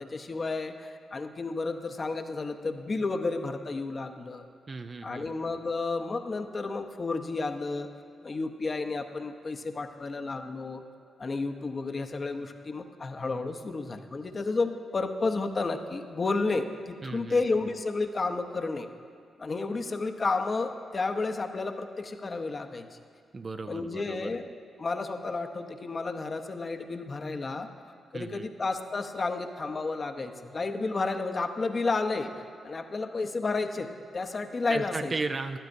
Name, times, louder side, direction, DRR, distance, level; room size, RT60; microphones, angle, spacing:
voice 1, 0.0-4.5 5.0-7.9 8.2-10.8 11.2-18.9 19.4-23.0 23.7-24.5 24.8-27.7 28.1-32.3 32.6-33.9 34.1-35.1, left 3 dB, 45° left, 7 dB, 0.8 m, -31 dB
voice 2, 4.7-5.3 17.0-17.4 23.3-24.3 28.1-28.5 34.7-35.6, right 3 dB, 45° right, 7 dB, 0.4 m, -35 dB
14.5 x 12.0 x 2.7 m, 2.4 s
supercardioid pair, 50°, 0 cm